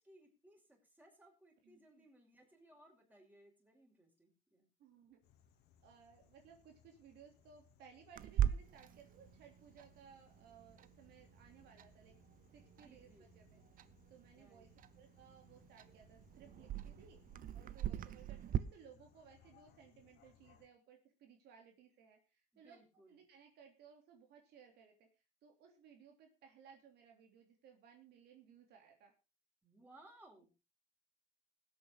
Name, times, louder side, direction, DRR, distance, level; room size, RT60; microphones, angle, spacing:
voice 1, 0.0-4.7 12.8-13.3 14.3-14.7 22.5-23.2 29.6-30.5, right 1 dB, 10° right, 0 dB, 5.5 m, -64 dB
voice 2, 1.6-2.1 4.8-5.2 5.8-12.1 12.5-13.6 14.1-17.2 17.5-22.8 23.1-29.1, right 7 dB, 75° right, 3 dB, 3.2 m, -62 dB
sound 1, 5.2-20.7, left 8 dB, 80° left, 2.2 m, -69 dB
Clock, 8.2-18.6, right 10 dB, 55° right, 0.8 m, -42 dB
21.0 x 8.5 x 3.8 m, 0.29 s
cardioid pair, 110°, 17 cm